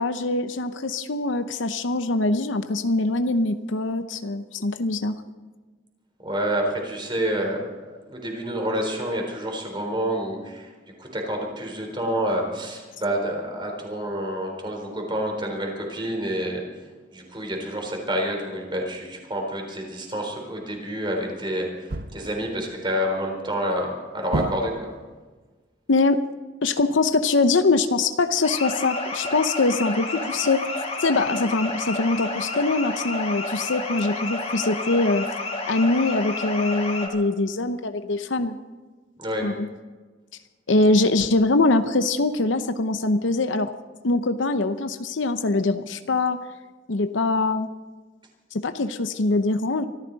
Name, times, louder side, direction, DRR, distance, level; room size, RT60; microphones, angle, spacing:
voice 1, 0.0-5.2 25.9-26.2 26.6-30.6 31.0-35.2 35.7-38.6 39.4-39.7 40.7-43.7 44.0-46.4 46.9-47.7 48.5-49.9, left 3 dB, 75° left, 9 dB, 0.8 m, -23 dB
voice 2, 6.2-10.7 11.0-16.6 17.1-24.9 39.2-39.5, equal, 25° right, 1 dB, 3.8 m, -28 dB
sound 1, 21.9-22.5 24.3-25.1, right 2 dB, 50° right, 0.8 m, -30 dB
sound 2, 28.4-37.1, left 3 dB, 35° left, 2.6 m, -30 dB
24.0 x 14.0 x 4.0 m, 1.3 s
head